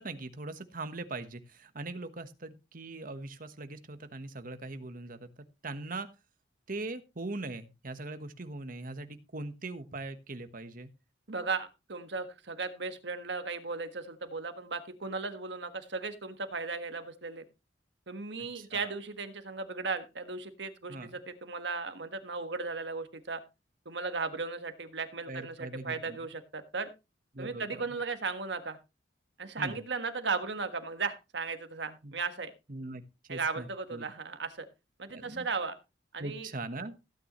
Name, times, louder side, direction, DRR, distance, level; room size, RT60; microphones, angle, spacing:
voice 1, 0.0-6.1 6.7-10.9 18.4-18.9 20.9-21.1 25.3-26.2 27.3-27.8 29.6-29.8 32.0-32.1 32.7-33.0 33.3-34.1 35.1-35.5 36.2-36.9, right 2 dB, 50° right, 9 dB, 1.2 m, -41 dB
voice 2, 11.3-17.4 18.1-23.4 23.8-26.9 27.4-28.8 29.4-32.5 33.3-34.6 35.0-35.8 36.1-36.5, right 4 dB, 70° right, 8 dB, 1.5 m, -36 dB
16.0 x 9.2 x 3.1 m, 0.27 s
head